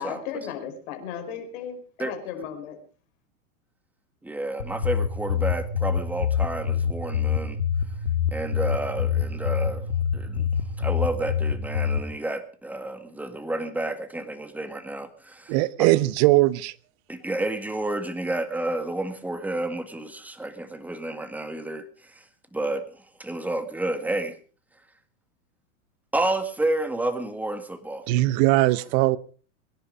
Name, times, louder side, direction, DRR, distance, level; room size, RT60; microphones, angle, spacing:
voice 1, 0.0-2.8, left 8 dB, 55° left, 5.3 m, -35 dB
voice 2, 4.2-7.6 8.3-9.9 10.1-10.5 10.8-15.5 17.1-22.2 22.5-24.4 26.1-28.1, right 2 dB, 5° right, 1.7 m, -30 dB
sound 1, 4.6-12.0, left 7 dB, 85° left, 1.8 m, -26 dB
voice 3, 15.5-16.7 28.1-29.2, right 18 dB, 45° right, 1.0 m, -20 dB
23.5 x 10.5 x 5.1 m
hypercardioid pair, 100°, 42 cm